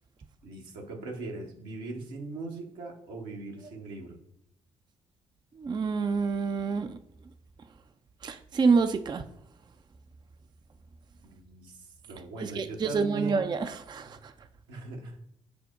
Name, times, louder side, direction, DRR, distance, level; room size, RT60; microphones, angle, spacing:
voice 1, 0.4-4.2 11.3-13.5 14.7-15.2, right 2 dB, 75° right, 0 dB, 1.0 m, -40 dB
voice 2, 5.6-7.0 8.2-9.2 12.4-14.3, right 5 dB, 25° right, 9 dB, 0.4 m, -27 dB
5.1 x 2.1 x 4.8 m, 0.76 s
hypercardioid pair, 40°, 16 cm